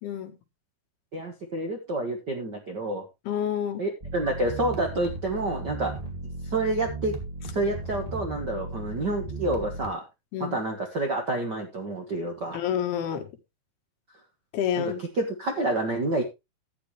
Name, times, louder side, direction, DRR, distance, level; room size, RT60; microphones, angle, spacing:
voice 1, 0.0-0.3 3.3-3.8 10.3-10.6 12.5-13.3 14.5-15.0, left 9 dB, 85° left, 4 dB, 3.4 m, -28 dB
voice 2, 1.1-3.0 3.8-5.9 6.4-7.1 7.5-10.0 10.4-12.6 14.8-16.2, right 2 dB, 60° right, 3 dB, 1.1 m, -28 dB
sound 1, 4.0-9.9, right 2 dB, 15° right, 1.4 m, -36 dB
13.0 x 9.0 x 3.2 m, 0.24 s
omnidirectional pair, 4.4 m